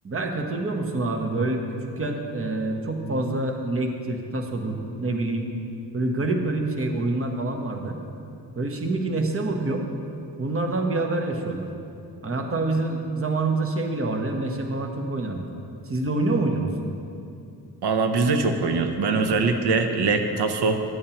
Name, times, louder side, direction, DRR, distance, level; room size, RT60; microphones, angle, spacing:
voice 1, 0.0-5.5 5.9-8.0 8.6-9.8 10.4-11.7 12.2-15.5 15.9-16.7, right 2 dB, 35° right, 3 dB, 1.0 m, -26 dB
voice 2, 17.8-20.8, right 4 dB, 70° right, 6 dB, 0.8 m, -22 dB
12.5 x 8.5 x 2.9 m, 2.5 s
cardioid pair, 70°, 41 cm